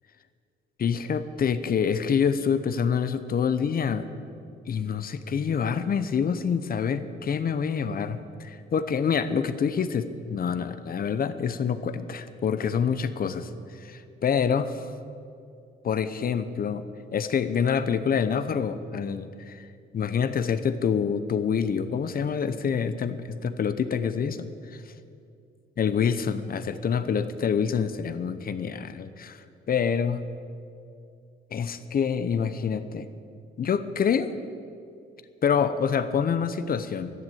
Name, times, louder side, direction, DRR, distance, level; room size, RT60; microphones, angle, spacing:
voice 1, 0.8-4.1 4.7-13.5 13.7-14.8 15.8-16.9 17.1-19.6 19.9-24.8 25.8-30.2 31.5-33.1 33.6-34.3 35.4-37.1, left 7 dB, 45° left, 12 dB, 0.8 m, -26 dB
12.0 x 11.0 x 7.9 m, 2.4 s
cardioid pair, 90°, 20 cm